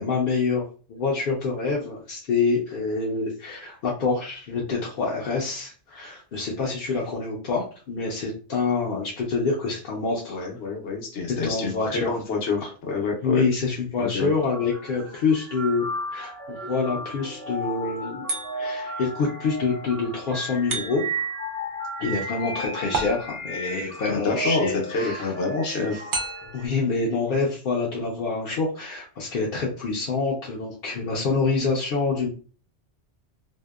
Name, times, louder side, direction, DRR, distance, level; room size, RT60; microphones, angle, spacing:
voice 1, 0.0-10.4 11.4-12.2 13.2-15.9 16.1-18.3 18.5-21.0 22.0-25.3 25.6-26.0 26.5-32.3, left 4 dB, 60° left, -3 dB, 0.7 m, -26 dB
voice 2, 10.3-13.4 14.0-14.3 24.1-25.9, left 4 dB, 85° left, 1 dB, 1.0 m, -28 dB
sound 1, 14.3-26.7, right 1 dB, 20° right, 0.4 m, -34 dB
sound 2, 18.3-18.9 20.7-21.3 22.9-23.7 26.1-26.7, right 3 dB, 80° right, 0.9 m, -31 dB
2.7 x 2.0 x 2.3 m, 0.39 s
omnidirectional pair, 1.2 m